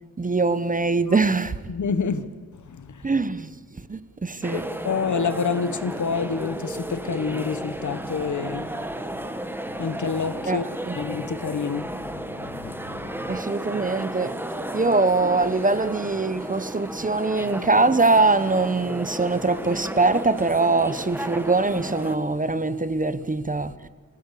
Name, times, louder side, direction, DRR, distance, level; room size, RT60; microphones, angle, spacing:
voice 1, 0.2-1.6 3.0-3.5 3.9-4.7 10.5-11.0 13.3-14.4 14.7-23.7, right 3 dB, 25° right, 0.7 m, -22 dB
voice 2, 1.7-2.2 2.7-3.1 4.5-8.9 9.7-10.6 11.0-13.4, left 5 dB, 65° left, 1.1 m, -28 dB
sound 1, 4.4-22.2, right 1 dB, 5° right, 1.3 m, -33 dB
28.0 x 16.0 x 8.4 m
wide cardioid pair, 130°, 33 cm